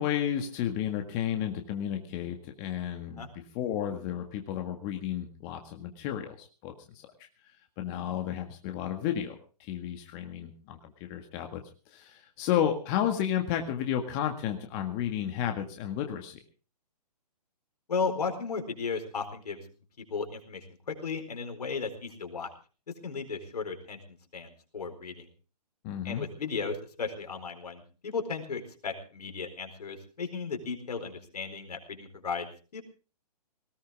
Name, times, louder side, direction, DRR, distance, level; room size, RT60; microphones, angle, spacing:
voice 1, 0.0-3.2 3.6-6.7 7.8-11.6 11.9-16.4 25.8-26.3, left 10 dB, 30° left, 5 dB, 1.9 m, -32 dB
voice 2, 17.9-19.7 20.1-22.5 23.0-25.3 26.0-32.8, left 5 dB, 70° left, 7 dB, 4.4 m, -35 dB
20.0 x 17.5 x 3.6 m, 0.36 s
hypercardioid pair, 130°, 21 cm